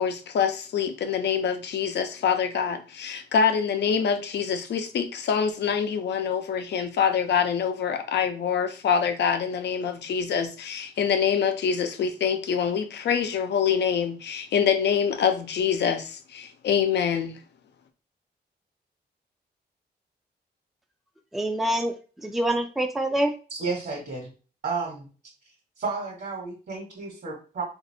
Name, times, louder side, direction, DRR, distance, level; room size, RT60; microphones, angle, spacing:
voice 1, 0.0-17.4, left 7 dB, 80° left, 0.6 m, -25 dB
voice 2, 21.3-23.3, right 1 dB, ahead, 0.4 m, -26 dB
voice 3, 23.5-24.3 24.6-25.1 25.8-27.6, right 4 dB, 65° right, 1.2 m, -32 dB
4.0 x 2.6 x 2.7 m
wide cardioid pair, 135°, 17 cm